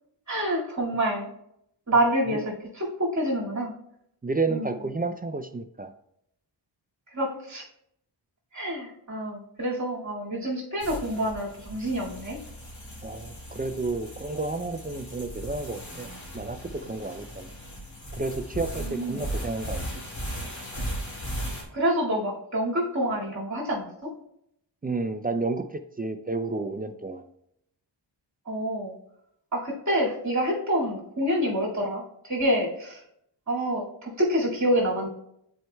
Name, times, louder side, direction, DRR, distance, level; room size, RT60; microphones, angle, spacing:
voice 1, 0.3-1.3 1.9-3.7 4.5-4.7 7.1-7.7 8.5-12.4 18.8-19.2 21.7-24.1 28.5-28.9 29.5-33.0 33.5-35.1, equal, 40° right, -3 dB, 2.2 m, -27 dB
voice 2, 4.2-5.9 13.0-16.1 16.3-17.5 18.1-19.8 24.8-25.6 26.0-27.2, right 3 dB, 20° right, 9 dB, 0.3 m, -31 dB
sound 1, 10.8-21.6, equal, 40° left, 2.0 m, -37 dB
10.5 x 4.5 x 2.3 m, 0.74 s
wide cardioid pair, 100°, 46 cm